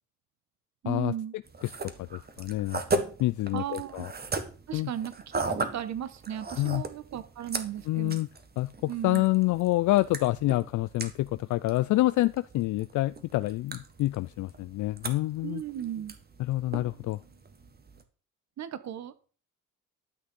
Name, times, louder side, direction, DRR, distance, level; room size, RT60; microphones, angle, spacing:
voice 1, 0.8-1.3 3.5-4.1 4.7-5.4 5.7-8.2 8.9-9.3 15.4-16.1 18.6-19.1, right 10 dB, 65° right, 1.3 m, -36 dB
sound 1, 1.4-18.0, right 3 dB, 30° right, 1.5 m, -38 dB
voice 2, 2.0-4.1 4.7-4.9 6.6-6.8 7.9-8.3 8.6-15.6 16.5-17.2, left 17 dB, 75° left, 0.4 m, -27 dB
12.0 x 6.3 x 5.3 m
cardioid pair, 90°, 30 cm